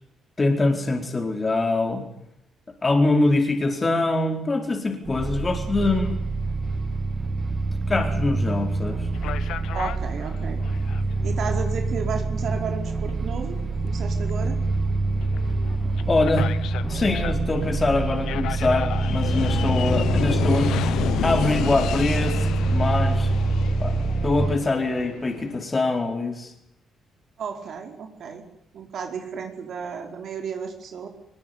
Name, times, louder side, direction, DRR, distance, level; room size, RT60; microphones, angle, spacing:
voice 1, 0.4-2.0 2.8-6.2 7.9-9.1 16.1-16.5 16.8-20.8 21.2-23.3 23.8-24.0 24.2-26.5, left 2 dB, 30° left, 4 dB, 4.5 m, -24 dB
sound 1, 5.0-24.6, right 3 dB, 40° right, 2.9 m, -25 dB
sound 2, 9.1-25.6, left 11 dB, 80° left, 1.1 m, -32 dB
voice 2, 9.7-10.6 11.2-13.6 13.8-14.6 15.8-16.1 27.4-28.4 28.7-31.1, right 6 dB, 65° right, 4 dB, 4.8 m, -33 dB
21.5 x 21.0 x 9.7 m, 0.81 s
cardioid pair, 90°, 0 cm